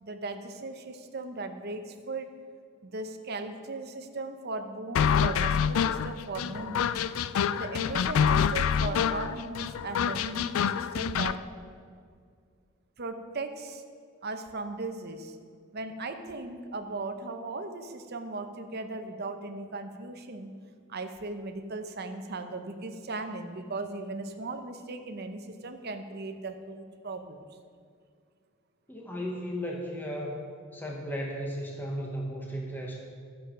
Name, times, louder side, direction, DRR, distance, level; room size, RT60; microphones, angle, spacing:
voice 1, 0.0-2.3 2.8-7.0 7.5-11.4 13.0-13.8 14.2-15.4 15.7-20.5 20.9-27.5, right 3 dB, 45° right, 7 dB, 0.8 m, -37 dB
sound 1, 4.9-11.4, left 7 dB, 70° left, 0.3 m, -26 dB
voice 2, 28.9-30.4 30.7-33.0, equal, 10° left, -1 dB, 1.0 m, -35 dB
12.5 x 7.2 x 5.1 m, 2.1 s
head